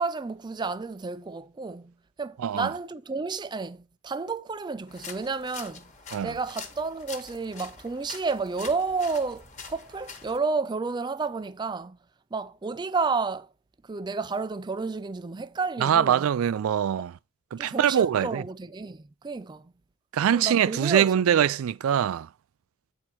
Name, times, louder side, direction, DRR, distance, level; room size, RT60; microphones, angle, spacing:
voice 1, 0.0-5.9 6.2-12.0 12.3-13.5 13.8-16.2 17.6-19.7 20.3-21.5, right 4 dB, 20° right, 0.4 m, -31 dB
sound 1, 4.9-10.4, left 5 dB, 35° left, 1.4 m, -44 dB
voice 2, 15.8-17.1 17.5-18.4 20.1-22.3, right 9 dB, 90° right, 0.3 m, -23 dB
8.6 x 4.5 x 4.5 m
head